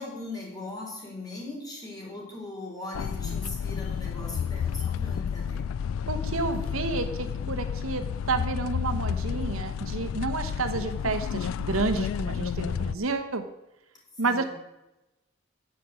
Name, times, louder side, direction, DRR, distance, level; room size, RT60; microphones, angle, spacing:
voice 1, 0.0-5.7 14.2-14.5, left 2 dB, 20° left, -3 dB, 4.2 m, -39 dB
sound 1, 2.9-12.9, left 7 dB, 75° left, 0.3 m, -31 dB
voice 2, 6.1-13.4 14.2-14.4, right 3 dB, 80° right, 8 dB, 1.1 m, -30 dB
10.0 x 7.5 x 7.7 m, 0.95 s
head